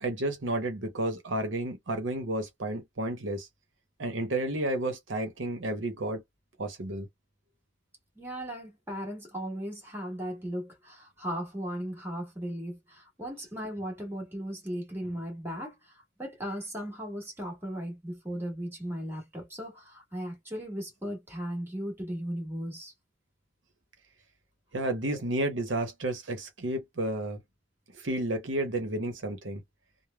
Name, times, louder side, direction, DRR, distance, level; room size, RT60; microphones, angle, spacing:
voice 1, 0.0-3.5 4.0-6.2 6.6-7.1 24.7-27.4 27.9-29.6, right 1 dB, 70° right, 0.8 m, -31 dB
voice 2, 8.1-22.9, equal, 10° right, 1.5 m, -37 dB
3.3 x 2.1 x 2.2 m
head